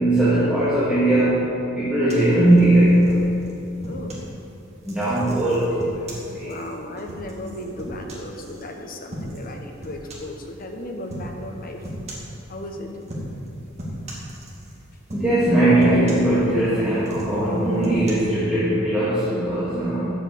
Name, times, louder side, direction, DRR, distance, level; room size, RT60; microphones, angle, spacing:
voice 1, 0.0-3.2 4.8-5.7 6.1-6.5 15.1-20.1, right 1 dB, 5° right, -12 dB, 2.2 m, -19 dB
sound 1, 2.1-4.3 4.8-8.6 9.1-9.5 9.8-10.4 11.1-11.3 11.8-12.4 13.0-13.5 13.8-14.8 15.1-15.5 15.8-16.7 17.0-18.1, equal, 35° right, 2.2 m, -36 dB
voice 2, 3.8-4.2 6.3-11.9 12.5-12.9, left 1 dB, 45° left, 3 dB, 1.1 m, -35 dB
8.0 x 7.6 x 7.8 m, 2.8 s
head